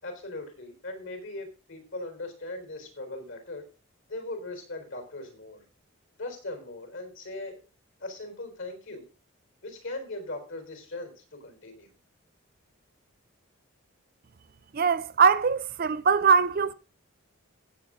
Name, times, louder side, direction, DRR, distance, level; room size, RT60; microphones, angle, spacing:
voice 1, 0.0-3.6 4.1-5.6 6.2-7.6 8.0-9.0 9.6-11.9, left 2 dB, 65° left, 4.0 m, -39 dB
voice 2, 14.7-16.7, right 6 dB, 45° right, 0.4 m, -22 dB
16.0 x 7.4 x 3.8 m
head